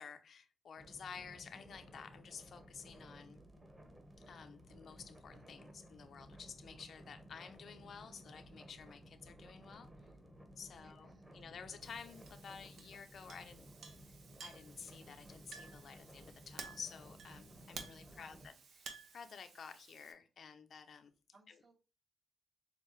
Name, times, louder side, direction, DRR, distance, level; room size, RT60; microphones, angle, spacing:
voice 1, 0.0-3.4 4.3-9.9 10.6-13.7 14.4-18.5 18.8-21.1 21.5-21.6, left 6 dB, 65° left, 0.6 m, -52 dB
sound 1, 0.8-18.5, equal, 20° right, 1.2 m, -57 dB
voice 2, 10.7-11.3 17.9-18.6 21.3-21.8, right 2 dB, 50° right, 1.8 m, -66 dB
Chink clink, 11.8-20.1, right 5 dB, 75° right, 0.9 m, -54 dB
6.6 x 2.4 x 3.1 m
cardioid pair, 70°, 0 cm